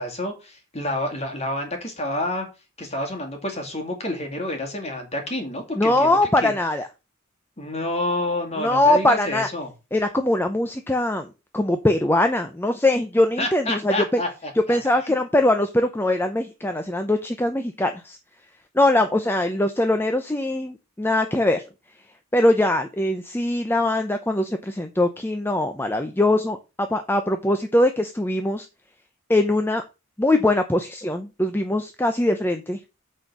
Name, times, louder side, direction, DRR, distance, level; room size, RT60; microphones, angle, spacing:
voice 1, 0.0-2.5 2.8-6.5 7.6-9.7 13.4-14.8, left 1 dB, 30° left, 3 dB, 2.4 m, -29 dB
voice 2, 5.8-6.9 8.6-9.5 9.9-14.2 14.7-18.2 18.7-21.6 22.3-28.7 29.3-29.8 30.2-32.8, left 1 dB, 10° left, 7 dB, 0.6 m, -22 dB
8.8 x 4.4 x 6.1 m, 0.28 s
head